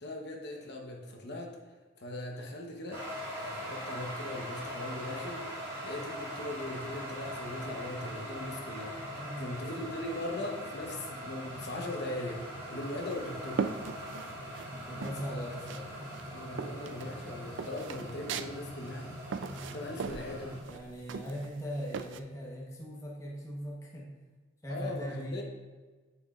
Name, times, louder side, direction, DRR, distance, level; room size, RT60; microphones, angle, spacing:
voice 1, 0.0-1.6 2.0-3.0 3.4-5.4 5.8-9.0 9.4-13.6 15.3-15.5 16.3-19.1 19.6-20.6 24.7-25.4, left 1 dB, 55° left, 0 dB, 1.0 m, -39 dB
sound 1, 2.9-20.6, equal, 15° right, 2.2 m, -41 dB
voice 2, 9.1-9.9 14.7-16.2 20.6-24.2 24.6-25.4, equal, 15° left, -3 dB, 1.0 m, -40 dB
sound 2, 12.8-14.7 15.0-15.9 16.1-22.2, right 5 dB, 65° right, 0.3 m, -39 dB
8.9 x 6.3 x 2.4 m, 1.3 s
head